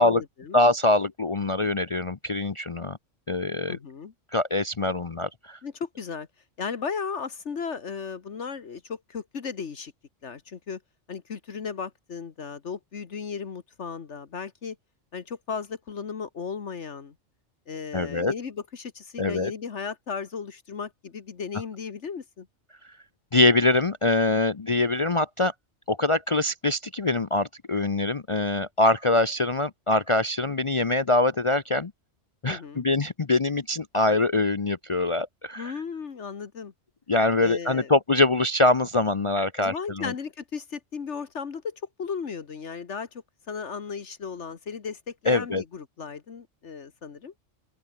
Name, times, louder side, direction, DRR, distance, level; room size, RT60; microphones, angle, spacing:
voice 1, 0.0-0.6 3.7-4.1 5.6-6.3 6.6-9.9 10.2-10.8 11.1-14.8 15.1-17.1 17.7-22.5 32.5-32.9 35.6-36.7 37.4-37.9 39.6-47.3, left 6 dB, 70° left, 1.7 m, -35 dB
voice 2, 0.5-3.0 3.3-3.8 4.3-5.6 17.9-18.3 19.2-19.5 23.3-25.5 25.9-31.9 32.4-35.7 37.1-40.1 45.3-45.6, left 2 dB, 30° left, 0.6 m, -24 dB
open air
omnidirectional pair, 1.3 m